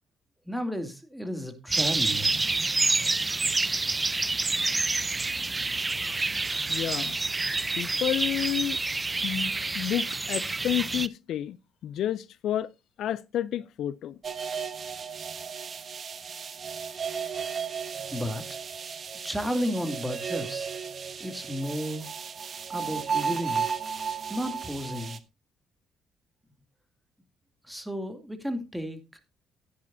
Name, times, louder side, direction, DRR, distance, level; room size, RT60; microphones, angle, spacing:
voice 1, 0.5-2.3 18.1-18.6 19.2-20.7 21.2-22.1 22.7-23.7 24.3-25.2 27.6-29.0, equal, 5° right, 2.5 m, -33 dB
sound 1, 1.7-11.1, right 3 dB, 25° right, 0.6 m, -28 dB
voice 2, 6.7-7.2 7.8-8.8 9.2-11.6 11.8-12.7 13.0-14.2, left 11 dB, 70° left, 0.5 m, -30 dB
sound 2, 14.2-25.2, right 6 dB, 50° right, 1.2 m, -34 dB
13.5 x 10.5 x 2.7 m
supercardioid pair, 65°, 0 cm